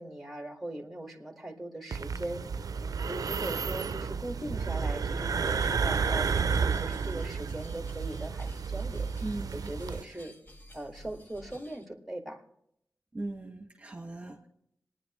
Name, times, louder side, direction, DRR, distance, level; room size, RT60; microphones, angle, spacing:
voice 1, 0.0-2.5 3.1-9.1 9.5-10.3 10.7-12.4, right 1 dB, ahead, 2 dB, 1.9 m, -40 dB
sound 1, 1.9-10.0, right 5 dB, 75° right, 0.4 m, -31 dB
sound 2, 4.3-11.9, left 1 dB, 30° left, 1.2 m, -53 dB
voice 2, 9.2-9.7 10.0-10.2 13.1-14.5, right 2 dB, 20° right, 0 dB, 1.5 m, -39 dB
27.0 x 9.8 x 3.0 m, 0.76 s
wide cardioid pair, 70°, 6 cm